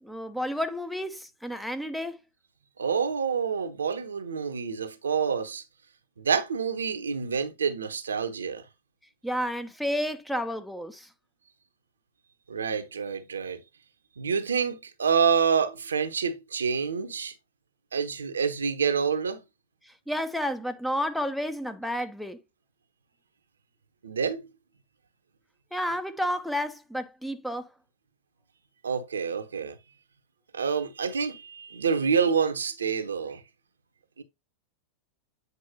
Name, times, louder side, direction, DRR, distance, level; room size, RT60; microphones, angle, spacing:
voice 1, 0.0-2.2 9.2-11.1 19.9-22.4 25.7-27.7, equal, ahead, 0.7 m, -31 dB
voice 2, 2.8-5.6 6.2-8.6 12.5-13.6 14.2-17.3 17.9-19.4 24.0-24.4 28.8-29.8 30.5-33.4 34.2-34.3, right 6 dB, 70° right, 0.8 m, -27 dB
8.2 x 4.7 x 2.8 m
figure-of-eight pair, 90°, 0 cm